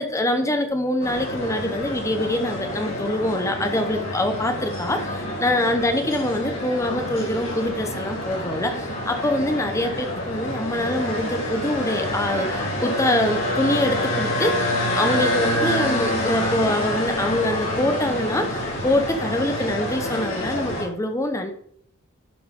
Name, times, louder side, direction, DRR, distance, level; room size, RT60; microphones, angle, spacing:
voice 1, 0.0-21.5, left 1 dB, 15° left, 6 dB, 0.8 m, -24 dB
sound 1, 1.0-20.8, left 1 dB, 80° left, 4.1 m, -27 dB
11.5 x 5.8 x 3.7 m, 0.64 s
head